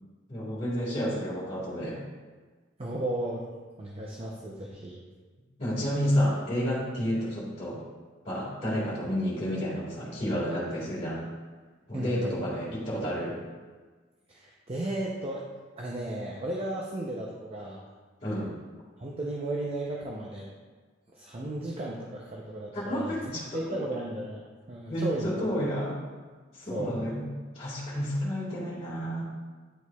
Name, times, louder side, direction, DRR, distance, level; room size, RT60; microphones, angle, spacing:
voice 1, 0.3-2.0 5.6-7.8 8.2-11.3 11.9-13.3 18.2-18.5 22.7-23.8 24.9-26.0 26.5-27.2 27.5-29.2, equal, 30° left, -10 dB, 1.8 m, -30 dB
voice 2, 2.8-3.4 3.8-5.0 11.9-12.2 14.3-15.5 15.8-17.8 19.0-20.5 21.1-23.1 23.5-24.4 24.7-25.3 26.7-27.0, right 1 dB, 30° right, -2 dB, 0.6 m, -34 dB
9.9 x 4.6 x 2.3 m, 1.4 s
head